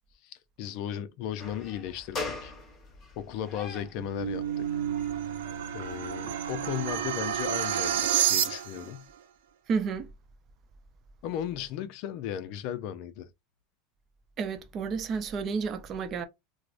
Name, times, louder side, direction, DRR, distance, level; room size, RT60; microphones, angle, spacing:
voice 1, 0.2-2.5 3.2-4.7 5.7-9.1 11.2-13.3, left 10 dB, 55° left, 0.4 m, -36 dB
sound 1, 1.4-7.4, left 3 dB, 30° left, 1.3 m, -43 dB
sound 2, 3.8-8.9, right 10 dB, 85° right, 0.7 m, -30 dB
voice 2, 9.7-10.1 14.4-16.3, right 5 dB, 30° right, 0.5 m, -31 dB
4.6 x 2.0 x 2.4 m
supercardioid pair, 145°, 0 cm